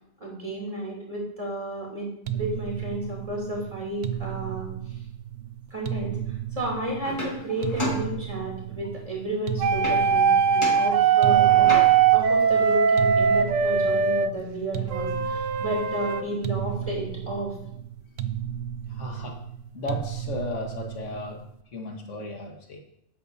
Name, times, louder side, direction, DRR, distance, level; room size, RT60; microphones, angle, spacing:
voice 1, 0.2-2.1 2.3-4.7 5.7-6.1 6.5-11.7 12.1-17.5, right 1 dB, 30° right, -3 dB, 3.2 m, -32 dB
sound 1, 2.3-21.6, right 11 dB, 65° right, 0.8 m, -34 dB
sound 2, 7.0-8.7 9.8-10.3 10.6-12.2 15.5-15.6 15.9-16.9, left 1 dB, 25° left, 2.1 m, -35 dB
sound 3, 9.6-14.3 14.9-16.2, right 7 dB, 85° right, 1.0 m, -20 dB
voice 2, 18.9-19.4 19.7-21.4 21.7-22.8, left 2 dB, 80° left, 3 dB, 1.7 m, -35 dB
11.5 x 8.6 x 2.8 m, 0.74 s
omnidirectional pair, 1.3 m